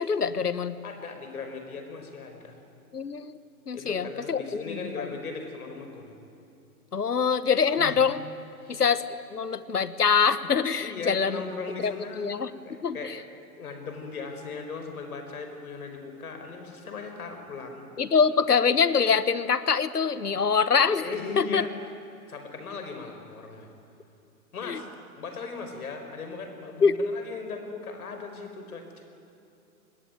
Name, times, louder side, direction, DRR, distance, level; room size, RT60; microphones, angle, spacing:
voice 1, 0.0-0.8 2.9-3.4 3.7-5.1 6.9-8.2 8.7-9.0 9.3-11.4 11.8-12.5 12.8-13.0 18.0-21.1 21.4-21.6 24.7-24.8 26.8-26.9, left 6 dB, 90° left, 15 dB, 1.4 m, -24 dB
voice 2, 0.8-2.6 3.7-6.2 7.8-8.0 8.6-8.8 10.8-13.2 13.6-17.9 21.0-21.7 22.3-23.7 24.5-24.9 25.1-29.0, left 4 dB, 70° left, 5 dB, 5.2 m, -38 dB
26.0 x 20.5 x 9.2 m, 2.7 s
hypercardioid pair, 120°, 45 cm